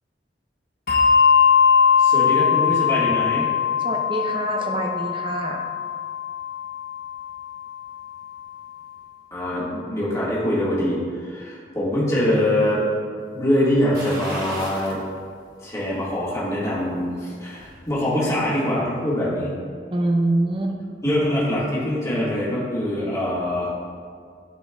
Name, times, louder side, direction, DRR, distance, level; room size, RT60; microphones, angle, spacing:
Bell, 0.9-7.7, left 6 dB, 55° left, 0.7 m, -20 dB
voice 1, 2.0-3.5 9.3-12.8 13.3-15.0 15.6-19.5 21.0-23.7, left 1 dB, 20° left, -8 dB, 1.7 m, -23 dB
voice 2, 3.8-5.7 19.9-20.8 21.0-21.3, right 2 dB, 30° right, 1 dB, 0.7 m, -25 dB
sound 1, 13.9-15.0 15.4-15.5 17.0-17.8 18.2-18.3, right 1 dB, 55° right, 1.3 m, -35 dB
12.0 x 4.5 x 2.3 m, 2.1 s
head